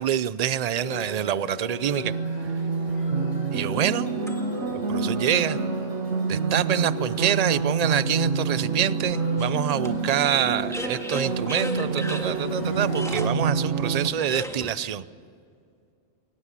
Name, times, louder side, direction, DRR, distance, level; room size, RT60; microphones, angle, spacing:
voice 1, 0.0-2.1 3.5-4.1 4.7-5.6 6.3-15.1, right 9 dB, 45° right, 16 dB, 0.6 m, -26 dB
sound 1, 0.8-13.3, left 1 dB, 45° left, 5.1 m, -38 dB
sound 2, 2.0-14.1, right 5 dB, 85° right, 1.3 m, -27 dB
sound 3, 3.1-4.8 5.5-5.6 9.4-14.7, equal, 5° left, 1.8 m, -37 dB
22.5 x 19.0 x 8.3 m, 2.3 s
omnidirectional pair, 1.2 m